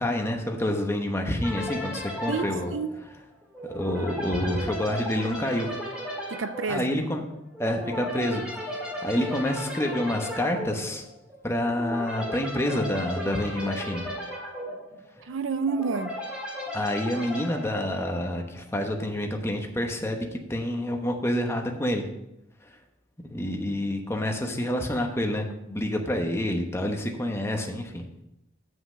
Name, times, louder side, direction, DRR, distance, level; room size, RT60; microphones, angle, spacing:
voice 1, 0.0-2.7 3.7-5.7 6.7-7.3 7.6-8.4 9.0-11.0 11.4-14.0 16.7-22.1 22.6-22.8 23.2-28.0, left 1 dB, 15° left, 1.0 m, -28 dB
sound 1, 1.4-18.6, left 1 dB, 5° right, 1.9 m, -36 dB
voice 2, 2.3-3.0 6.3-6.9 15.2-16.2, right 5 dB, 70° right, 0.5 m, -29 dB
7.7 x 5.8 x 6.2 m
head